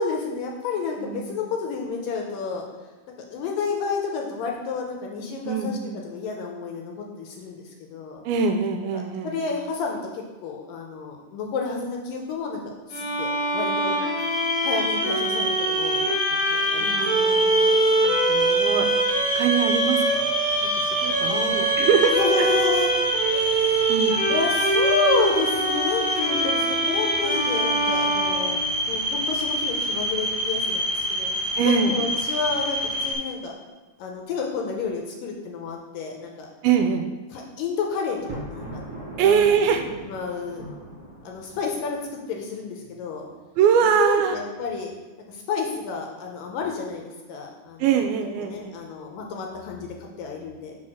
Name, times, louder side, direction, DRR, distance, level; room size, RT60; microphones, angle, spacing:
voice 1, 0.0-2.6 3.1-5.8 6.0-8.2 8.9-12.6 12.9-14.0 14.6-17.4 21.2-23.9 24.3-28.6 28.9-33.5 34.0-36.5 37.3-38.8 39.2-39.4 40.0-40.6 41.2-43.3 44.0-44.9 45.3-47.9 48.4-50.8, left 5 dB, 75° left, 1 dB, 2.3 m, -30 dB
voice 2, 1.0-1.4 5.4-6.0 8.2-9.5 16.8-18.9 19.4-20.3 20.6-22.5 23.9-24.2 31.6-32.0 36.6-37.1 39.2-39.8 43.6-44.4 47.8-48.8, right 7 dB, 80° right, 6 dB, 2.3 m, -23 dB
Bowed string instrument, 12.9-28.9, right 2 dB, 15° left, 1.3 m, -24 dB
sound 1, 14.2-33.1, equal, 50° right, 1.4 m, -27 dB
Thunder, 38.1-42.2, right 1 dB, 30° right, 2.6 m, -39 dB
6.2 x 4.2 x 6.2 m, 1.3 s
omnidirectional pair, 4.4 m